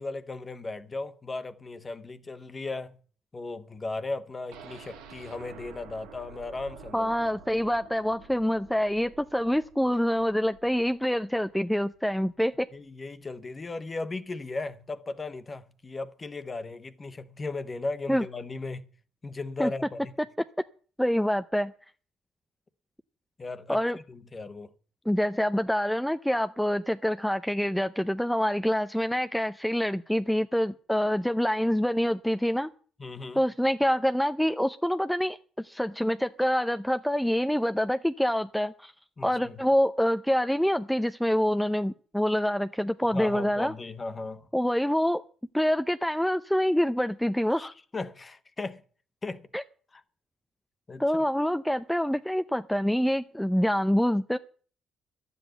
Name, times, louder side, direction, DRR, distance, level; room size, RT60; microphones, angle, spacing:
voice 1, 0.0-3.0 3.3-7.1 12.7-18.9 19.2-20.1 23.4-24.7 33.0-33.4 39.2-39.6 43.1-44.5 47.5-48.8 49.2-49.5 50.9-51.0, left 3 dB, 30° left, 1.3 m, -36 dB
sound 1, 4.5-12.4 12.7-12.8 13.2-13.3, right 5 dB, 80° right, 1.6 m, -50 dB
voice 2, 6.9-12.7 18.1-18.2 19.6-19.7 21.0-21.7 23.7-24.0 25.1-32.7 33.4-38.9 39.2-43.7 44.5-45.2 45.5-47.7 49.5-49.6 51.0-54.4, equal, 5° left, 0.6 m, -26 dB
11.5 x 8.2 x 7.9 m
hypercardioid pair, 55°, 0 cm